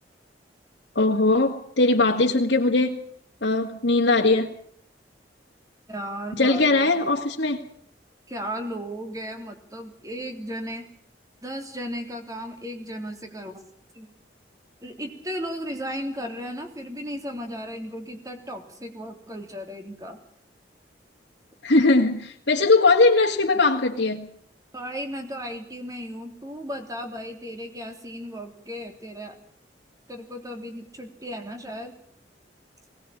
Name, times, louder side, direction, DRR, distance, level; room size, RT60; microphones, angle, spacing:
voice 1, 1.0-3.0 3.4-4.5 6.3-7.6 21.6-24.3, left 3 dB, 85° left, -3 dB, 2.1 m, -20 dB
voice 2, 5.9-6.9 8.3-10.9 11.4-13.6 13.9-14.1 14.8-20.2 24.7-29.4 30.1-31.9, equal, 20° right, 4 dB, 3.4 m, -35 dB
20.5 x 19.0 x 8.8 m, 0.63 s
head